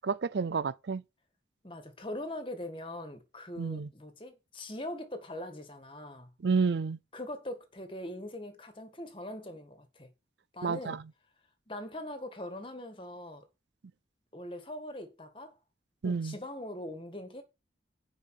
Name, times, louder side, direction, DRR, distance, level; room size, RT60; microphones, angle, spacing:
voice 1, 0.0-1.0 3.6-3.9 6.4-7.0 10.6-11.0 16.0-16.3, right 5 dB, 80° right, 0.5 m, -30 dB
voice 2, 1.6-6.3 7.1-10.1 10.5-11.0 11.7-13.4 14.3-15.6 16.0-17.4, left 1 dB, 30° left, 1.8 m, -41 dB
9.6 x 5.1 x 6.5 m
head